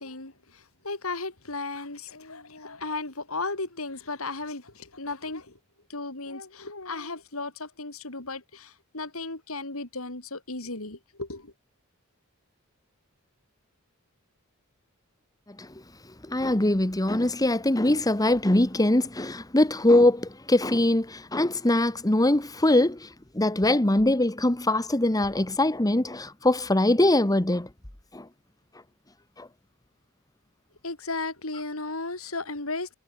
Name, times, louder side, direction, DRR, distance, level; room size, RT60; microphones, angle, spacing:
voice 1, 0.0-5.6 5.9-11.5 30.8-32.9, left 3 dB, 75° left, 4.6 m, -35 dB
voice 2, 16.3-23.1 23.3-27.7 28.1-28.3 29.4-29.5, left 1 dB, 15° left, 1.4 m, -22 dB
head